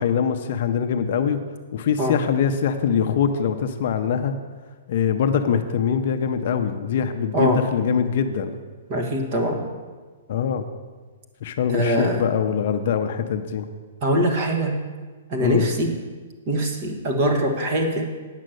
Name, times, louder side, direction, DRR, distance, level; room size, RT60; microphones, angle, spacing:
voice 1, 0.0-1.4 1.7-4.3 4.9-8.6 10.3-10.7 11.4-13.7 15.4-15.7, left 7 dB, 40° left, 7 dB, 0.6 m, -23 dB
voice 2, 8.9-9.6 11.7-12.2 14.0-14.8 15.3-16.0 16.5-18.1, equal, 30° right, 4 dB, 1.3 m, -23 dB
9.0 x 6.4 x 7.7 m, 1.4 s
hypercardioid pair, 175°, 0 cm